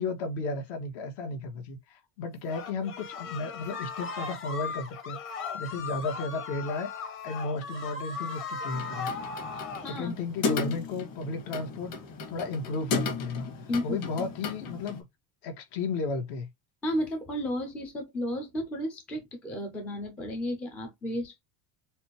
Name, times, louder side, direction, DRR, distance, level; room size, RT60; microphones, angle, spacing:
voice 1, 0.0-5.2 5.5-6.9 7.2-9.1 9.8-12.0 12.3-13.5 13.8-15.0 15.4-16.5, left 3 dB, 65° left, 1.8 m, -34 dB
sound 1, 2.5-9.9, left 5 dB, 25° left, 1.0 m, -37 dB
sound 2, 8.7-15.0, left 5 dB, 45° left, 1.8 m, -35 dB
voice 2, 16.8-21.4, equal, 5° left, 0.3 m, -33 dB
6.6 x 2.5 x 3.0 m
cardioid pair, 180°, 47 cm